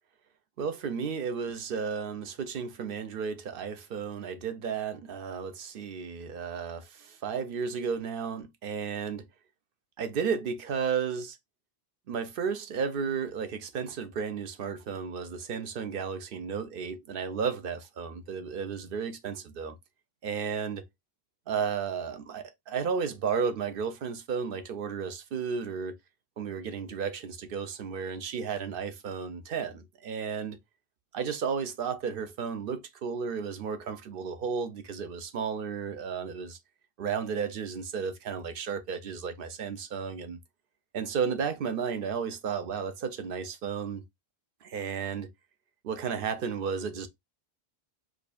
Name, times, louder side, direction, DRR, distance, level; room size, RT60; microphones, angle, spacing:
voice 1, 0.6-9.3 10.0-11.4 12.1-19.8 20.2-20.8 21.5-25.9 26.4-30.6 31.1-36.6 37.0-40.4 40.9-44.0 44.6-45.3 45.8-47.1, right 6 dB, 65° right, 0.7 m, -33 dB
4.8 x 2.3 x 2.3 m
omnidirectional pair, 1.1 m